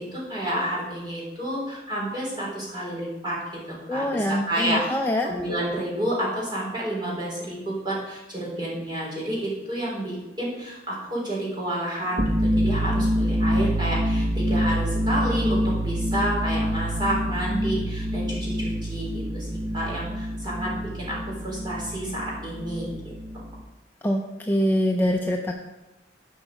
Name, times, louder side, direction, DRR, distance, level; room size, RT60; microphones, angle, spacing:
voice 1, 0.0-4.8 5.2-19.5 19.7-23.0, right 1 dB, 25° right, -5 dB, 3.8 m, -30 dB
voice 2, 3.9-5.3 24.0-25.5, equal, 10° left, 2 dB, 0.5 m, -24 dB
sound 1, 12.1-23.6, equal, 55° right, 0.8 m, -26 dB
11.0 x 5.4 x 4.9 m, 1.0 s
head